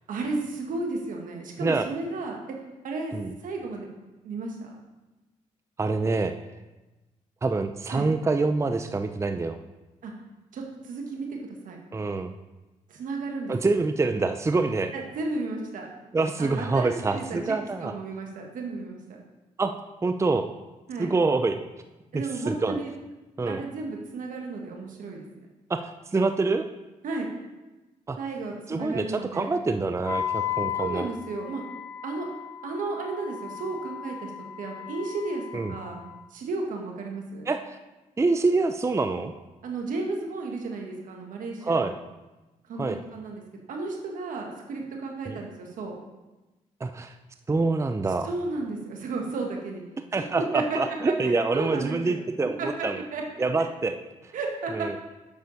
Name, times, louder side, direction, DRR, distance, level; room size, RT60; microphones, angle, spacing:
voice 1, 0.1-2.4 2.8-3.2 3.4-3.9 4.2-4.8 7.9-8.1 10.0-10.1 10.5-11.4 11.7-11.8 12.9-13.5 14.9-15.9 16.4-17.5 17.8-19.2 20.9-21.1 22.1-22.9 23.5-25.3 27.0-27.3 28.2-29.5 30.8-31.6 32.0-32.3 32.6-34.3 34.6-35.4 35.7-36.0 36.3-37.5 39.6-41.9 42.7-42.9 43.1-43.4 43.7-46.0 48.2-49.8 50.2-50.8 51.2-52.2 52.6-52.7 53.1-53.4 54.3-54.9, right 3 dB, 75° right, 1 dB, 1.6 m, -33 dB
voice 2, 5.8-6.3 7.4-9.6 11.9-12.3 13.5-14.9 16.1-17.9 19.6-19.7 20.0-20.5 21.0-21.6 22.1-22.8 23.4-23.6 25.7-26.6 28.1-28.2 28.7-31.1 35.5-35.7 37.5-37.8 38.2-39.3 41.6-41.9 42.8-43.0 45.3-45.4 46.8-47.1 47.5-48.3 50.1-53.0 53.4-53.9 54.2-54.3 54.7-55.0, right 3 dB, 20° right, 8 dB, 0.5 m, -26 dB
Wind instrument woodwind instrument, 30.0-36.2, left 10 dB, 20° left, 1.1 m, -35 dB
8.2 x 6.5 x 4.1 m, 1.1 s
supercardioid pair, 65°, 14 cm